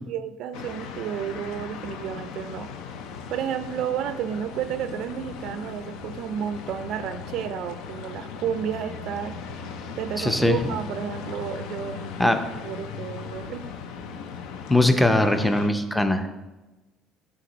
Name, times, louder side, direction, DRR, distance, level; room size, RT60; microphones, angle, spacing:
voice 1, 0.1-2.7 3.3-9.4 10.0-12.4 12.6-13.6, right 9 dB, 65° right, 10 dB, 0.3 m, -31 dB
sound 1, 0.5-15.7, left 6 dB, 80° left, 0.5 m, -38 dB
voice 2, 10.2-10.6 12.2-12.4 14.7-16.3, left 1 dB, 5° left, 7 dB, 0.5 m, -20 dB
8.4 x 3.6 x 4.0 m, 1.1 s
cardioid pair, 105°, 0 cm